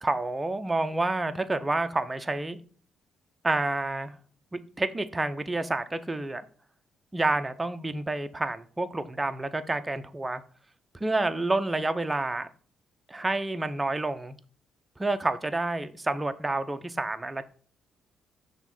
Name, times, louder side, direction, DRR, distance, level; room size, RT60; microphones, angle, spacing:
voice 1, 0.0-2.6 3.4-4.1 4.5-6.5 7.1-10.4 11.0-12.5 13.1-14.3 15.0-17.4, right 2 dB, 15° right, 0.7 m, -29 dB
6.1 x 3.6 x 6.0 m
cardioid pair, 90°, 0 cm